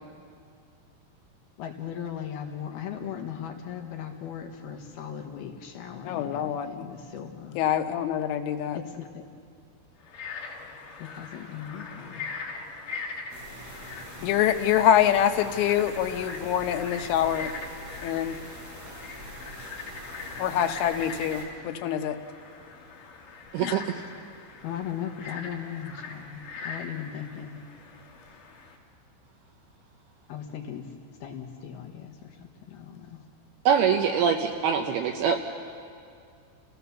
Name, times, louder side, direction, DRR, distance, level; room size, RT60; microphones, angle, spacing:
voice 1, 1.6-7.6 8.7-9.2 11.0-12.3 14.2-14.3 24.6-27.6 30.3-30.9 31.2-33.2, left 9 dB, 70° left, 2 dB, 2.8 m, -38 dB
voice 2, 6.1-6.8 7.6-8.8 14.2-17.5 18.0-18.4 20.4-22.2 23.6-23.8, left 10 dB, 85° left, 7 dB, 3.4 m, -25 dB
Frog, 10.0-28.8, left 4 dB, 50° left, 3.2 m, -42 dB
sound 1, 13.3-21.4, equal, 40° right, 6.7 m, -44 dB
voice 3, 23.5-24.0 33.7-35.4, right 7 dB, 80° right, 4 dB, 2.3 m, -24 dB
30.0 x 17.0 x 7.0 m, 2.3 s
omnidirectional pair, 5.4 m